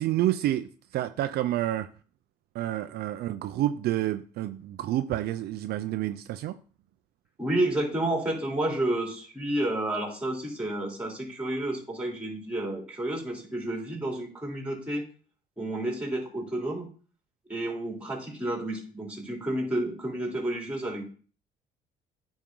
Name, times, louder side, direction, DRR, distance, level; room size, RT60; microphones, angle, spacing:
voice 1, 0.0-1.9 2.5-6.5, right 13 dB, 70° right, 0.5 m, -29 dB
voice 2, 7.4-15.0 15.6-16.9 17.5-21.0, right 1 dB, 5° right, 3.4 m, -30 dB
9.3 x 5.3 x 3.8 m
cardioid pair, 110°, 17 cm